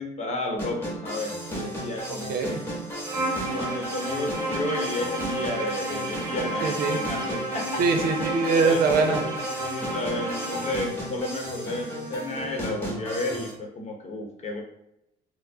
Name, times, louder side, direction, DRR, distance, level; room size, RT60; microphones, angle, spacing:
voice 1, 0.0-2.6 3.5-7.8 8.6-9.4 9.7-14.6, left 2 dB, 40° left, 1 dB, 0.9 m, -32 dB
sound 1, 0.6-13.5, right 1 dB, 15° left, 1.2 m, -35 dB
voice 2, 2.1-2.6 6.6-7.0 7.8-9.2, right 4 dB, 60° right, 4 dB, 0.6 m, -23 dB
Bowed string instrument, 3.0-10.9, right 1 dB, 20° right, 0.8 m, -31 dB
4.2 x 2.0 x 2.7 m, 0.82 s
cardioid pair, 110°, 17 cm